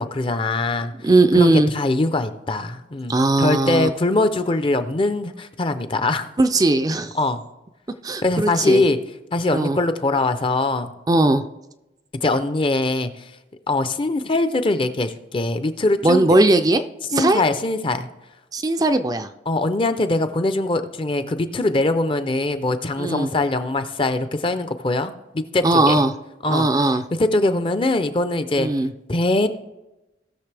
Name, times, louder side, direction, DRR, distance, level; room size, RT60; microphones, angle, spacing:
voice 1, 0.0-0.9 1.3-6.3 7.1-7.4 8.2-9.0 9.3-10.9 12.2-13.1 13.7-16.3 17.1-18.1 19.5-26.0 26.4-26.7 27.2-28.7 29.1-29.5, left 2 dB, 30° left, 10 dB, 0.6 m, -22 dB
voice 2, 1.0-1.7 3.1-3.9 6.4-7.1 8.0-8.8 9.5-9.8 11.1-11.5 16.0-16.8 17.1-17.4 18.5-19.3 23.0-23.3 25.6-26.1 26.5-27.0 28.6-28.9, right 2 dB, 20° right, 8 dB, 0.4 m, -18 dB
18.5 x 6.6 x 3.4 m, 0.97 s
head